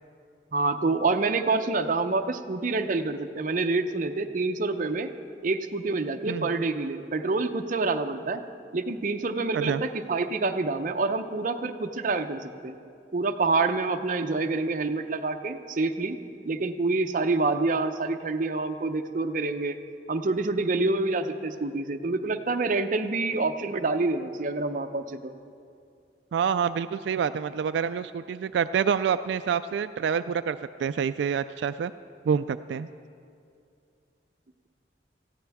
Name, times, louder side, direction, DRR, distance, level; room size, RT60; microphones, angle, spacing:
voice 1, 0.5-5.1 5.4-8.4 8.7-12.8 13.1-16.2 16.4-19.8 20.1-25.3, right 3 dB, 50° right, 7 dB, 0.7 m, -27 dB
voice 2, 26.3-31.9 32.3-32.9, right 7 dB, 90° right, 11 dB, 0.3 m, -27 dB
19.5 x 14.5 x 3.5 m, 2.4 s
head